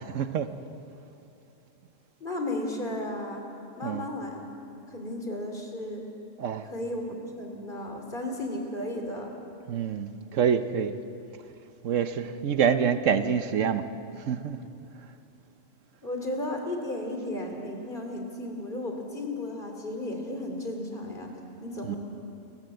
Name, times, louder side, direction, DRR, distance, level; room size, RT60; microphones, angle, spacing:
voice 1, 0.1-0.5 3.8-4.1 6.4-6.7 9.7-10.9 11.8-13.9 14.2-14.6 21.8-21.9, right 7 dB, 70° right, 10 dB, 1.2 m, -26 dB
voice 2, 2.2-3.4 3.8-4.4 4.9-6.0 6.6-9.3 16.0-21.3 21.6-22.0, left 1 dB, 40° left, 3 dB, 3.0 m, -34 dB
29.5 x 13.5 x 7.8 m, 2.8 s
omnidirectional pair, 1.4 m